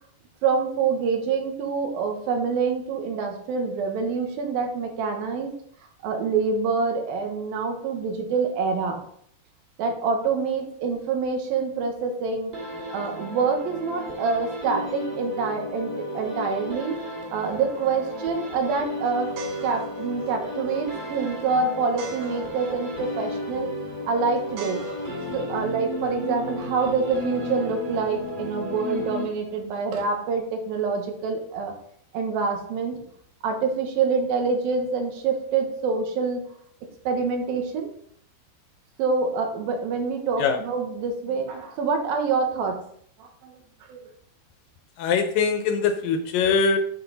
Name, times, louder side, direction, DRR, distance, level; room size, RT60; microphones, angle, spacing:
voice 1, 0.4-5.6 6.0-9.0 9.8-12.5 12.9-17.0 17.3-19.3 19.6-23.7 24.0-24.9 25.3-31.7 32.1-33.0 33.4-36.4 37.0-37.9 39.0-42.8 43.2-43.5 43.9-44.1, right 5 dB, 75° right, 3 dB, 3.1 m, -26 dB
sound 1, 12.5-29.7, left 1 dB, 15° right, 1.9 m, -34 dB
sound 2, 17.4-28.6, right 3 dB, 60° right, 2.5 m, -45 dB
voice 2, 45.0-46.8, left 5 dB, 75° left, 7 dB, 2.3 m, -22 dB
10.0 x 6.1 x 4.0 m, 0.65 s
omnidirectional pair, 4.3 m